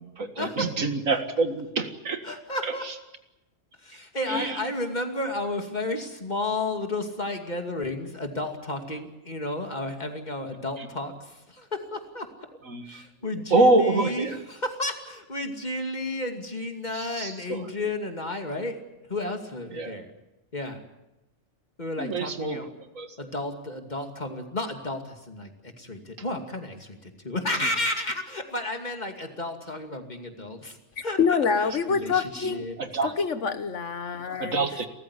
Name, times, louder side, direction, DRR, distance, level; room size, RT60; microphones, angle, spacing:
voice 1, 0.0-2.2 2.6-3.0 4.3-4.7 10.8-10.9 12.6-13.1 13.5-14.4 16.9-17.9 19.7-20.0 22.0-23.2 32.8-33.1 34.4-34.9, right 2 dB, 90° right, 2.3 m, -26 dB
voice 2, 2.2-2.8 3.8-12.3 12.9-18.8 19.1-20.1 20.5-20.8 21.8-22.7 23.2-32.8, left 2 dB, 35° left, 2.7 m, -32 dB
voice 3, 31.2-32.7 33.2-34.7, left 5 dB, 70° left, 1.6 m, -26 dB
29.5 x 14.5 x 9.9 m
omnidirectional pair, 1.3 m